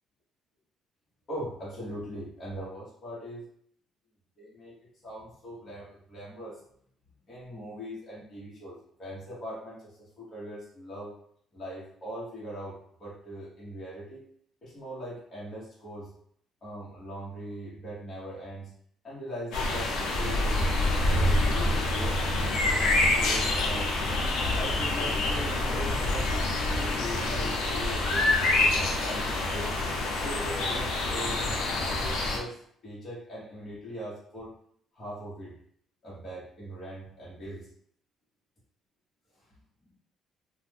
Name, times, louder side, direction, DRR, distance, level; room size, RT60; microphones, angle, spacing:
voice 1, 1.3-3.4 4.4-4.7 5.0-6.6 7.3-9.9 10.2-11.1 11.5-14.2 14.6-16.1 16.6-18.7 19.0-20.7 21.0-22.8 23.1-23.9 24.6-26.3 26.8-29.8 30.2-32.6 32.8-34.5 34.9-35.5 36.0-37.7, equal, 30° left, -7 dB, 1.1 m, -40 dB
sound 1, 19.5-32.4, left 2 dB, 80° left, 0.6 m, -26 dB
2.5 x 2.2 x 3.4 m, 0.65 s
cardioid pair, 145°, 0 cm